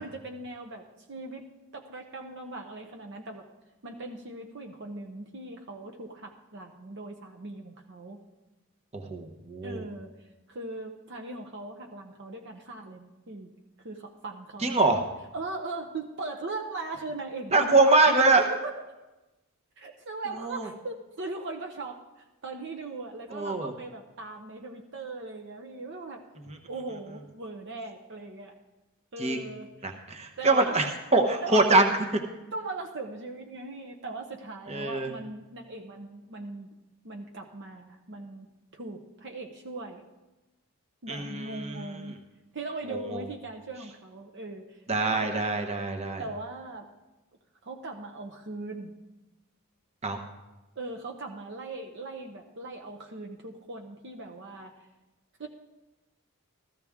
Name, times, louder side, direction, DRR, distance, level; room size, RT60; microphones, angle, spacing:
voice 1, 0.0-3.5 3.8-8.2 9.6-10.1 10.5-13.5 13.8-15.0 15.3-18.8 19.8-26.2 26.7-28.5 29.1-30.0 30.4-30.9 31.4-31.8 32.5-36.7 37.0-40.0 41.0-42.2 42.5-44.8 45.1-45.5 46.2-46.9 47.6-48.9 50.8-54.7 55.4-55.5, right 2 dB, 55° right, 3 dB, 0.8 m, -39 dB
voice 2, 8.9-9.8 14.6-15.0 17.5-18.4 20.4-20.7 23.3-23.7 26.5-26.6 29.2-29.4 29.8-30.9 31.1-31.9 34.7-35.1 41.1-42.0 42.9-43.2 44.9-46.2 50.0-50.2, right 2 dB, 30° right, 4 dB, 1.0 m, -24 dB
14.5 x 14.0 x 3.6 m, 1.1 s
head